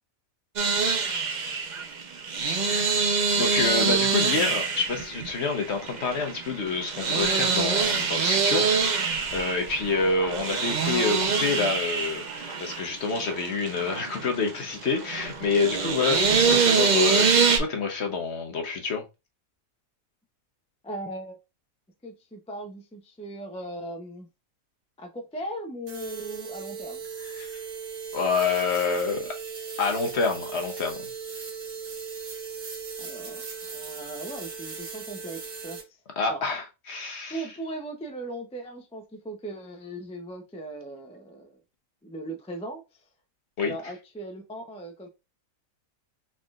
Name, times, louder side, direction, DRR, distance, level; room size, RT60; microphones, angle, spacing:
sound 1, 0.6-17.6, right 5 dB, 45° right, 0.6 m, -25 dB
voice 1, 2.6-19.0 27.2-27.6 28.1-29.3 29.8-31.1 36.2-37.4 43.6-43.7, left 4 dB, 55° left, 1.1 m, -28 dB
voice 2, 20.8-21.4 22.0-24.3 25.0-27.0 33.0-36.0 36.3-36.4 37.3-41.6 42.0-43.0 43.6-45.1, right 1 dB, 10° left, 0.4 m, -38 dB
sound 2, 25.9-35.8, right 5 dB, 75° right, 1.6 m, -38 dB
4.2 x 3.7 x 2.4 m
omnidirectional pair, 1.5 m